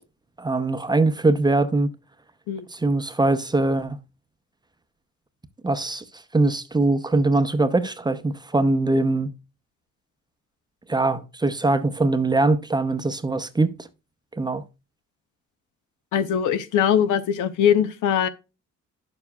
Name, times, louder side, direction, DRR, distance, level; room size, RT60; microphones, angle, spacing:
voice 1, 0.4-1.9 2.7-4.0 5.6-6.0 6.3-9.3 10.9-13.7 14.3-14.6, right 2 dB, 15° right, 0.6 m, -22 dB
voice 2, 16.1-18.3, left 9 dB, 85° left, 0.8 m, -21 dB
9.7 x 7.0 x 2.3 m
cardioid pair, 90°, 30 cm